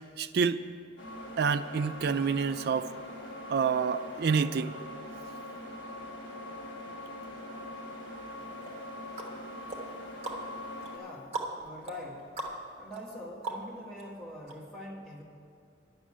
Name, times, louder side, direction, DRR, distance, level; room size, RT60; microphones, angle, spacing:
voice 1, 0.2-0.6 1.4-2.9 3.5-4.7, right 5 dB, 55° right, 12 dB, 0.3 m, -28 dB
sound 1, 1.0-11.0, left 1 dB, 70° left, 2.3 m, -42 dB
sound 2, 8.6-14.0 14.5-14.6, right 3 dB, 30° right, 1.2 m, -41 dB
voice 2, 10.9-12.3 12.8-15.2, left 1 dB, 5° left, -6 dB, 1.6 m, -44 dB
10.0 x 6.2 x 8.5 m, 2.3 s
head